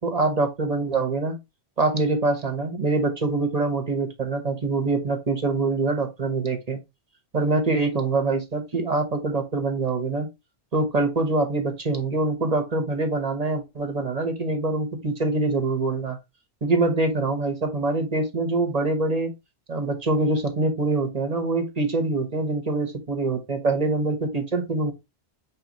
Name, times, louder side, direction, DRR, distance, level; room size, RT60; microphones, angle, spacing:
voice 1, 0.0-1.3 1.8-6.8 7.3-10.3 10.7-16.2 16.6-19.3 19.7-24.9, right 3 dB, 40° right, 1.0 m, -24 dB
4.9 x 3.2 x 2.9 m
omnidirectional pair, 1.1 m